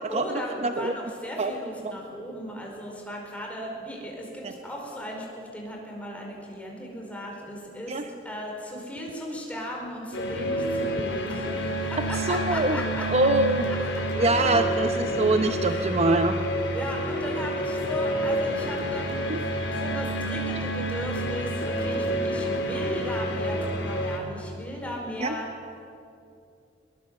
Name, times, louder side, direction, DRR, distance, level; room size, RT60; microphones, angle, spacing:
voice 1, 0.1-13.1 13.7-14.0 15.6-15.9 16.6-25.5, equal, 10° left, -1 dB, 4.8 m, -36 dB
voice 2, 0.6-0.9 1.4-1.5 7.9-8.0 12.3-12.8 13.1-13.6 14.2-16.4 19.3-19.4 25.2-25.4, right 2 dB, 35° right, 7 dB, 0.8 m, -24 dB
sound 1, 10.1-24.2, equal, 85° left, 3.5 m, -28 dB
22.0 x 19.5 x 7.7 m, 2.6 s
head